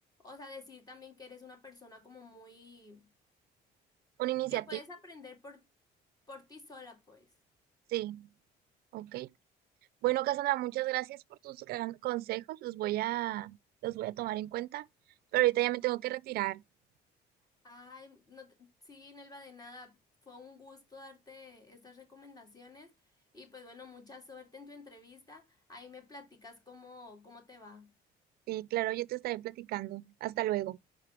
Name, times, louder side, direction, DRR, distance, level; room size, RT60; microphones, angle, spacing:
voice 1, 0.2-3.1 4.5-5.6 6.3-7.3 17.6-20.0 20.2-22.9 23.3-27.9, left 3 dB, 20° left, 2.8 m, -51 dB
voice 2, 4.2-4.6 7.9-8.3 8.9-9.3 10.0-13.6 13.8-14.9 15.3-16.6 28.5-30.8, right 17 dB, 65° right, 0.4 m, -32 dB
5.3 x 4.9 x 5.9 m
cardioid pair, 110°, 17 cm